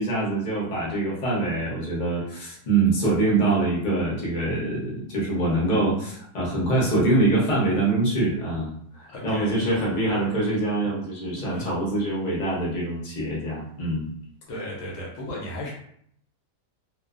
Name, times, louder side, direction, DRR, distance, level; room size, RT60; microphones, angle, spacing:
voice 1, 0.0-8.7 9.0-14.1, right 2 dB, 40° left, -5 dB, 0.7 m, -24 dB
voice 2, 9.1-9.6 10.1-10.2 11.4-11.7 14.5-15.7, left 1 dB, 60° left, -4 dB, 1.0 m, -35 dB
2.5 x 2.3 x 2.4 m, 0.66 s
omnidirectional pair, 1.7 m